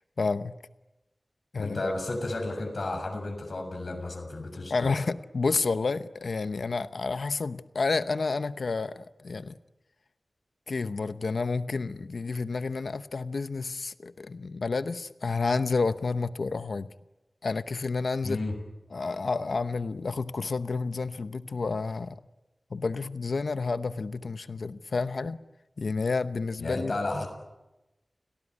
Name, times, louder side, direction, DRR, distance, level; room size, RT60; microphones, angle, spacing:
voice 1, 0.2-0.5 1.5-1.9 4.7-9.6 10.7-16.9 17.4-18.4 18.9-22.1 22.7-25.4 25.8-26.9, left 4 dB, 90° left, 12 dB, 0.8 m, -30 dB
voice 2, 1.6-4.9 18.2-18.6 26.6-27.3, left 2 dB, 65° left, 4 dB, 7.0 m, -32 dB
29.5 x 18.5 x 9.8 m, 1.0 s
wide cardioid pair, 65°, 0 cm